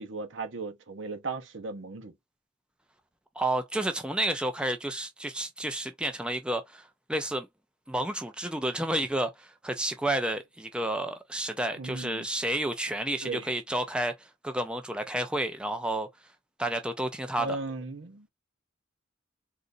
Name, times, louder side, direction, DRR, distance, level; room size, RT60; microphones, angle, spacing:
voice 1, 0.0-2.1 11.7-12.3 13.2-13.5 17.4-18.3, right 3 dB, 75° right, 0.9 m, -36 dB
voice 2, 3.4-7.5 7.9-16.1 16.6-17.6, right 1 dB, 5° right, 0.4 m, -31 dB
3.7 x 2.5 x 2.6 m
head